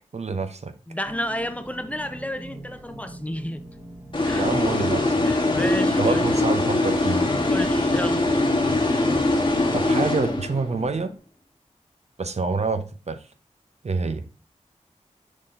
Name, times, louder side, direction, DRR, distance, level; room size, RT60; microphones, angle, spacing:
voice 1, 0.1-0.7 4.4-5.5 6.0-7.3 9.7-11.1 12.2-13.3 13.8-14.2, right 4 dB, 60° right, 0.7 m, -27 dB
voice 2, 0.9-3.6 4.2-4.5 5.2-6.2 7.5-8.2, equal, 10° left, 0.7 m, -31 dB
sound 1, 1.0-11.2, right 1 dB, 25° right, 1.3 m, -43 dB
sound 2, 4.1-10.8, left 2 dB, 40° left, 1.3 m, -22 dB
6.5 x 3.9 x 3.8 m
wide cardioid pair, 60°, 13 cm